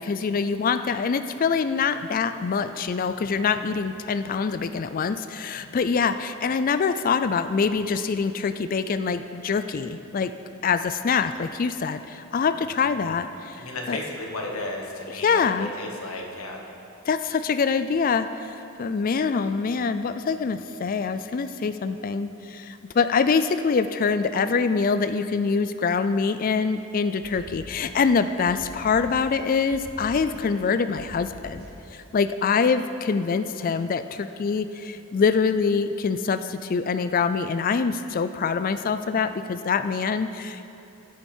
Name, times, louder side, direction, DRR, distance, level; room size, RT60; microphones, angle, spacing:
voice 1, 0.0-10.3 10.6-14.0 15.1-15.8 17.1-31.6 31.9-40.7, left 5 dB, 40° left, 11 dB, 0.3 m, -25 dB
voice 2, 13.6-16.6, left 2 dB, 75° left, 1 dB, 1.5 m, -34 dB
sound 1, 27.2-28.2 28.5-29.4 29.7-30.7 31.0-31.9, equal, 50° right, 1.8 m, -44 dB
15.0 x 8.8 x 4.4 m, 2.7 s
head